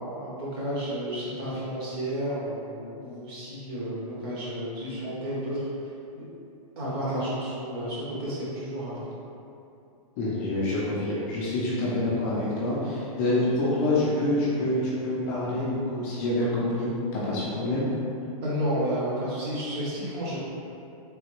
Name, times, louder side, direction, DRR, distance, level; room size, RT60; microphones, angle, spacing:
voice 1, 0.0-5.7 6.1-6.3 6.8-9.1 18.4-20.4, equal, 40° right, -8 dB, 0.9 m, -31 dB
voice 2, 10.2-17.9, left 1 dB, 30° left, -7 dB, 0.5 m, -27 dB
3.3 x 2.2 x 3.0 m, 2.6 s
supercardioid pair, 165°, 19 cm